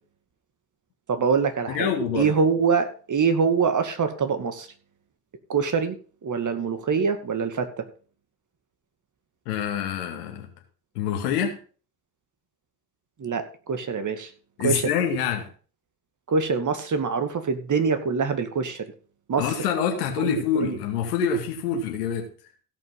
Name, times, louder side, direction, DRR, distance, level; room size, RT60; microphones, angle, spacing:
voice 1, 1.1-4.7 5.5-6.0 6.2-7.9 13.2-14.3 14.6-14.9 16.3-18.9 19.3-19.6 20.2-20.8, right 5 dB, 40° right, 8 dB, 2.2 m, -24 dB
voice 2, 1.7-2.3 9.5-10.5 11.0-11.6 14.6-15.5 19.4-22.3, left 7 dB, 85° left, 3 dB, 2.3 m, -26 dB
16.5 x 5.7 x 5.5 m, 0.40 s
hypercardioid pair, 55°, 46 cm